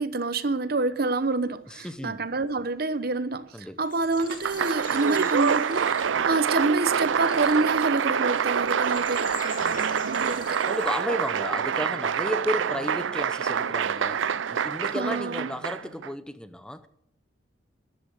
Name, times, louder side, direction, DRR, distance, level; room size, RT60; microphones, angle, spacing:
voice 1, 0.0-10.6 14.9-15.6, right 3 dB, 55° right, 0.9 m, -27 dB
sound 1, 1.3-1.4 2.8-2.9 3.5-3.6 4.0-5.0 5.3-5.4 5.6-7.9 8.2-8.3 8.6-11.1 13.7-13.9 14.2-14.6, left 4 dB, 25° left, 6.6 m, -51 dB
voice 2, 1.7-2.3 3.5-3.8 9.6-10.0 10.6-16.9, equal, 5° left, 0.8 m, -33 dB
sound 2, 3.8-11.0, left 7 dB, 45° left, 1.9 m, -46 dB
Applause, 4.2-16.1, right 7 dB, 80° right, 0.5 m, -26 dB
13.0 x 11.0 x 8.2 m
head